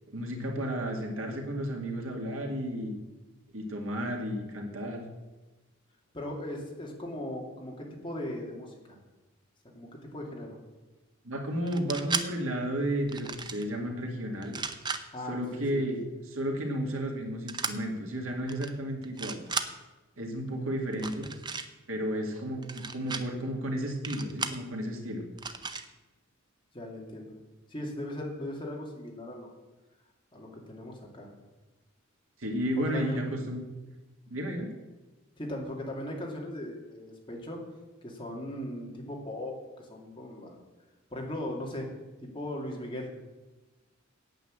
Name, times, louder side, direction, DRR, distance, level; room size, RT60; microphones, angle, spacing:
voice 1, 0.1-3.0 3.5-5.0 11.2-14.6 15.3-16.0 16.3-19.4 20.2-21.3 21.9-25.2 32.4-33.6 34.3-34.7, equal, 85° right, 2 dB, 2.1 m, -32 dB
voice 2, 6.1-9.0 9.7-10.6 15.1-15.8 26.7-27.3 27.7-29.5 30.3-31.3 32.8-33.2 35.4-37.6 38.0-40.6 41.1-41.9 42.2-43.1, left 1 dB, 25° left, -1 dB, 2.4 m, -38 dB
sound 1, 11.7-12.3 13.1-13.6 14.4-15.0 17.5-17.7 18.5-18.7 19.0-19.7 20.9-21.7 22.6-23.2 24.0-24.6 25.4-25.8, right 4 dB, 20° right, 0.6 m, -34 dB
9.0 x 8.5 x 7.4 m, 1.1 s
head